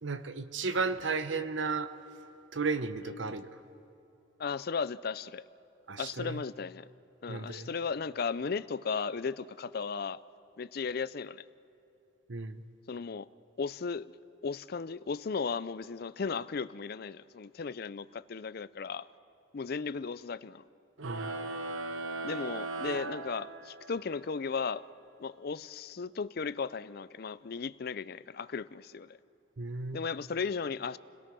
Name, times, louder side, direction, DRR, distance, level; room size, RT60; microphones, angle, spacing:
voice 1, 0.0-1.9 2.5-3.6 5.9-6.4 7.3-7.7 12.3-12.6 21.0-21.3 29.6-30.0, right 4 dB, 70° right, 0.9 m, -34 dB
voice 2, 4.4-5.4 6.0-6.9 7.2-10.2 10.6-11.4 12.9-13.3 13.6-14.1 14.4-19.1 19.5-20.6 22.2-24.9 25.2-29.2 29.9-31.0, left 5 dB, 50° left, 0.4 m, -35 dB
sound 1, 21.0-24.0, right 3 dB, 90° right, 1.1 m, -37 dB
29.5 x 17.5 x 6.1 m
head